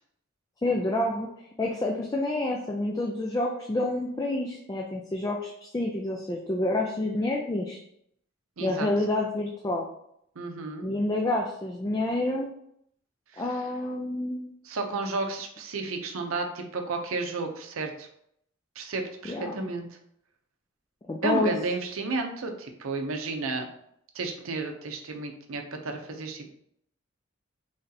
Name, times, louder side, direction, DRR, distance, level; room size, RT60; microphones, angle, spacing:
voice 1, 0.6-1.3 1.6-7.8 8.6-9.9 10.8-12.5 13.4-14.5 19.2-19.7 21.1-21.5, left 2 dB, 15° left, -1 dB, 0.3 m, -28 dB
voice 2, 8.6-8.9 10.4-10.9 13.3-13.6 14.6-18.1 18.8-20.0 21.2-23.7 24.1-26.5, right 3 dB, 80° right, 4 dB, 0.6 m, -32 dB
3.2 x 2.7 x 3.8 m, 0.72 s
head